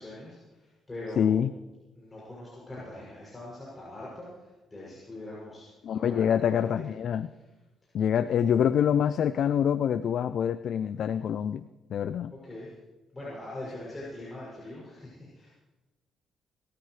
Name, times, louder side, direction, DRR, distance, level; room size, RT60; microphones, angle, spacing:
voice 1, 0.0-1.5 1.9-5.7 5.9-6.8 12.3-12.7 13.1-15.6, left 1 dB, 20° left, -7 dB, 7.0 m, -42 dB
voice 2, 1.2-1.5 5.8-7.3 7.9-12.3, left 8 dB, 65° left, 13 dB, 0.4 m, -26 dB
27.0 x 13.5 x 3.3 m, 1.1 s
cardioid pair, 90°, 0 cm